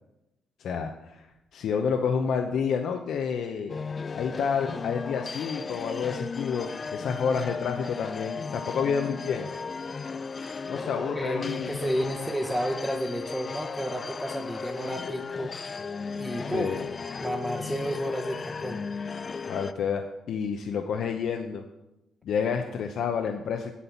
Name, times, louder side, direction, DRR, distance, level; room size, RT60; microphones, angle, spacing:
voice 1, 0.6-1.3 1.5-3.7 4.1-9.5 10.7-11.9 16.4-16.9 19.5-21.6 22.2-23.7, left 6 dB, 70° left, 4 dB, 0.8 m, -29 dB
sound 1, 3.7-19.7, left 5 dB, 35° left, 0.4 m, -36 dB
voice 2, 11.0-15.6 16.1-16.7 17.2-18.8, equal, 10° right, -2 dB, 1.1 m, -31 dB
8.3 x 7.7 x 7.0 m, 0.94 s
cardioid pair, 90°, 0 cm